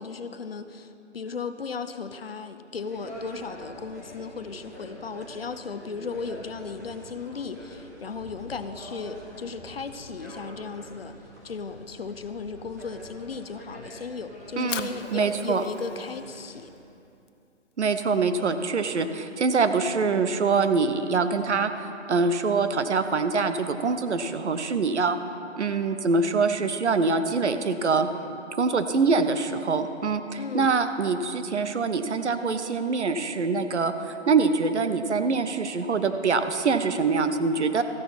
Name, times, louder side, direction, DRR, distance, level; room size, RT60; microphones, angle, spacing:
voice 1, 0.0-11.2 11.4-16.7 30.4-30.7, left 5 dB, 55° left, 10 dB, 0.6 m, -36 dB
sound 1, 2.8-16.7, equal, 15° right, 0.9 m, -45 dB
Fire, 14.4-20.6, left 7 dB, 85° left, 0.8 m, -43 dB
voice 2, 14.6-15.6 17.8-21.7 22.1-25.2 25.6-28.1 28.6-37.8, right 4 dB, 70° right, 9 dB, 0.9 m, -24 dB
14.0 x 10.0 x 4.2 m, 2.6 s
hypercardioid pair, 180°, 36 cm